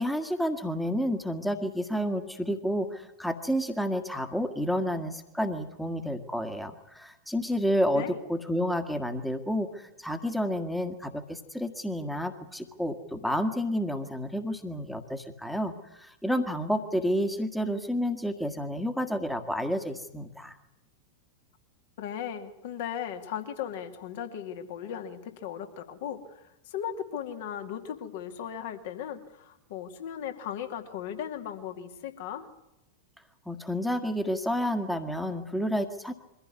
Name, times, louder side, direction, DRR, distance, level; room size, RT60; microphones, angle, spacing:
voice 1, 0.0-20.6 33.4-36.1, equal, ahead, 7 dB, 1.7 m, -30 dB
voice 2, 22.0-32.5, left 9 dB, 50° left, 6 dB, 2.4 m, -37 dB
23.5 x 15.5 x 9.8 m, 0.93 s
figure-of-eight pair, 90°, 0 cm